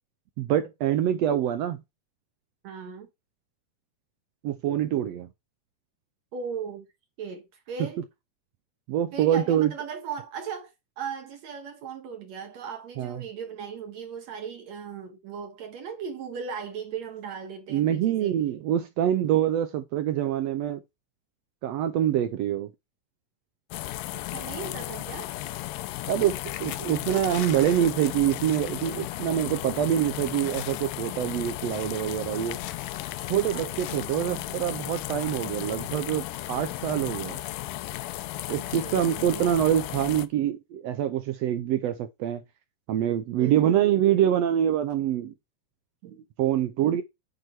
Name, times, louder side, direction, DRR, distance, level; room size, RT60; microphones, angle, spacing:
voice 1, 0.4-1.8 4.4-5.3 8.9-9.7 13.0-13.2 17.7-20.8 21.6-22.7 26.1-32.6 33.3-37.4 38.5-42.4 42.9-45.3 46.4-47.0, right 11 dB, 85° right, 1.4 m, -25 dB
voice 2, 2.6-3.1 6.3-6.9 7.2-8.1 9.1-18.4 24.2-25.3 33.5-34.7 38.5-39.5 43.4-44.1 46.0-46.2, right 6 dB, 65° right, 2.3 m, -38 dB
sound 1, 23.7-40.3, left 15 dB, 90° left, 2.3 m, -35 dB
sound 2, 26.3-29.6 29.9-30.1 30.4-30.9 31.5-34.1 34.9-35.5 36.2-36.3 36.6-36.9, left 12 dB, 70° left, 1.9 m, -43 dB
9.0 x 4.8 x 4.5 m
omnidirectional pair, 3.8 m